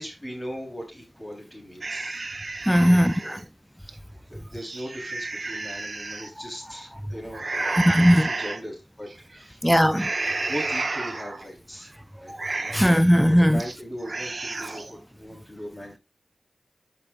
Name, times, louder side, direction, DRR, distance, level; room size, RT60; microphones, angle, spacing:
voice 1, 0.0-2.2 2.7-3.4 3.8-4.0 4.3-9.9 10.5-11.9 12.2-12.8 13.3-16.0, equal, 20° left, 3.5 m, -39 dB
sound 1, 1.8-3.4 3.9-4.0 4.5-6.3 7.3-8.6 9.1-9.4 9.9-11.5 11.8-11.9 12.3-13.0 13.4-13.8 14.0-14.9, right 3 dB, 50° right, 1.0 m, -31 dB
voice 2, 2.7-3.4 7.6-8.3 9.6-10.1 12.3-12.4 12.7-13.6, equal, ahead, 0.5 m, -18 dB
13.0 x 5.3 x 2.4 m
wide cardioid pair, 65°, 0 cm